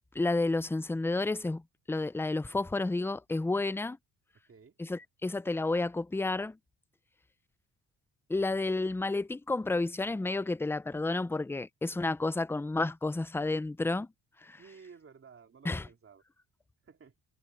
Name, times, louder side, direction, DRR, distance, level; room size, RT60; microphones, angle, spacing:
voice 1, 0.1-1.6 1.9-4.0 4.8-6.6 8.3-14.1 14.4-14.6 15.6-15.8, left 2 dB, 5° left, 0.5 m, -31 dB
voice 2, 4.5-4.8 14.6-16.2 16.8-17.1, right 6 dB, 35° right, 2.7 m, -54 dB
cardioid pair, 105°, 38 cm